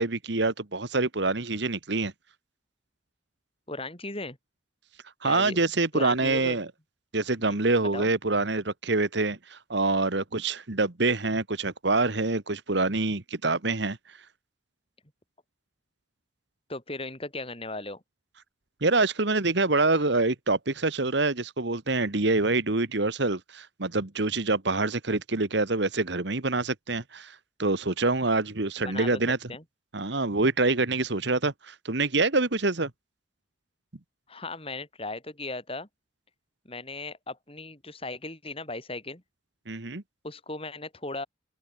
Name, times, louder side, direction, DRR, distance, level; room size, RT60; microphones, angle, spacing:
voice 1, 0.0-2.1 5.2-6.7 7.1-14.0 18.8-29.4 29.9-32.9 39.7-40.0, right 3 dB, 60° right, 1.5 m, -26 dB
voice 2, 3.7-4.4 5.2-5.6 5.9-6.6 7.4-7.6 7.9-8.1 16.7-18.0 28.8-29.2 29.5-29.6 34.3-35.9 36.6-39.2 40.2-41.3, left 2 dB, 30° left, 4.6 m, -37 dB
head